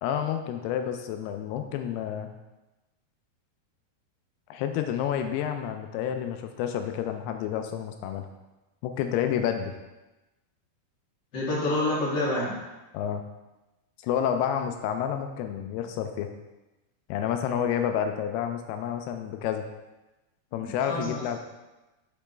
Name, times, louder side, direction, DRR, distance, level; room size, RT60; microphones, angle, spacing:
voice 1, 0.0-2.3 4.5-8.3 8.8-9.7 12.9-13.2 14.0-16.3 17.1-19.7 20.5-21.4, left 9 dB, 85° left, 6 dB, 2.5 m, -29 dB
voice 2, 11.3-12.6 20.5-21.2, left 1 dB, 35° left, -7 dB, 1.9 m, -28 dB
7.0 x 5.2 x 3.3 m, 1.0 s
omnidirectional pair, 4.5 m